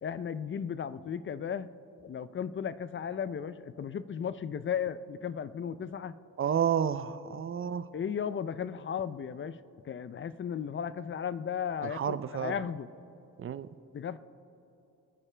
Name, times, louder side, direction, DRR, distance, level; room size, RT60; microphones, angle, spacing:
voice 1, 0.0-1.7 2.0-6.2 7.9-12.9 13.9-14.2, left 7 dB, 35° left, 15 dB, 0.5 m, -35 dB
voice 2, 6.4-7.9 11.9-12.5 13.4-13.7, right 8 dB, 40° right, 14 dB, 0.5 m, -30 dB
25.5 x 9.8 x 3.3 m, 2.9 s
cardioid pair, 105°, 33 cm